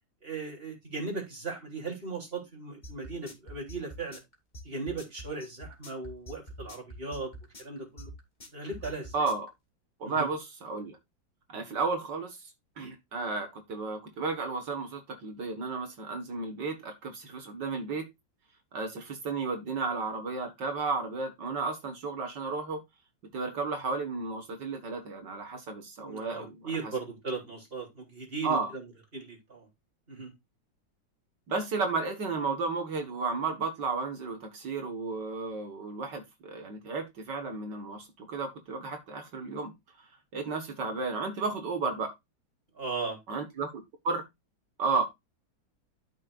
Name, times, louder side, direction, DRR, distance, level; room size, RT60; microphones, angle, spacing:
voice 1, 0.2-4.2 4.6-7.3 7.6-8.1 8.5-9.1 10.0-10.3 26.0-28.9 29.1-29.7 30.1-30.3 42.7-43.2, right 3 dB, 30° right, 3.9 m, -37 dB
sound 1, 2.8-9.5, equal, 20° left, 2.7 m, -45 dB
voice 2, 9.1-9.5 10.0-11.0 11.5-12.4 12.8-18.1 18.7-22.8 23.3-26.8 28.4-28.7 31.5-39.7 40.3-42.1 43.3-43.7 44.0-44.2 44.8-45.0, right 4 dB, 60° right, 2.3 m, -33 dB
13.0 x 6.7 x 2.5 m
omnidirectional pair, 2.1 m